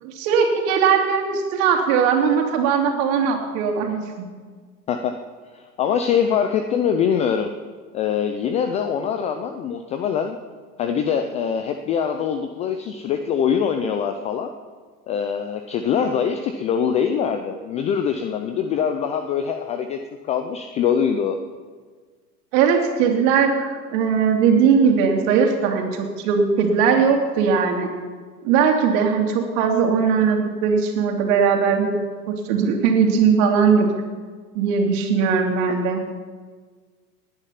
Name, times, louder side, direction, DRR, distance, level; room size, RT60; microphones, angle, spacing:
voice 1, 0.0-4.3 22.5-27.9 28.4-32.0 32.3-33.9 34.5-36.0, right 6 dB, 50° right, 2 dB, 3.2 m, -19 dB
voice 2, 5.5-7.5 7.9-10.4 10.8-14.5 15.1-20.0 20.2-21.4, left 7 dB, 15° left, 7 dB, 0.3 m, -23 dB
19.0 x 10.0 x 5.8 m, 1.5 s
hypercardioid pair, 105°, 50 cm